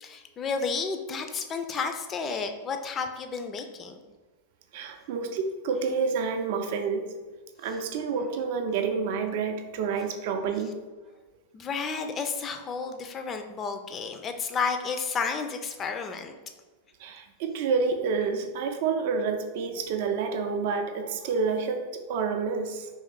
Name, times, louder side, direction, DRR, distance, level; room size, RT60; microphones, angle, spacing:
voice 1, 0.0-4.0 11.5-16.3, left 5 dB, 25° left, 6 dB, 0.4 m, -32 dB
voice 2, 4.7-7.1 7.6-10.7 17.0-22.9, right 5 dB, 50° right, 5 dB, 0.4 m, -29 dB
3.1 x 3.0 x 3.8 m, 1.3 s
figure-of-eight pair, 90°, 0 cm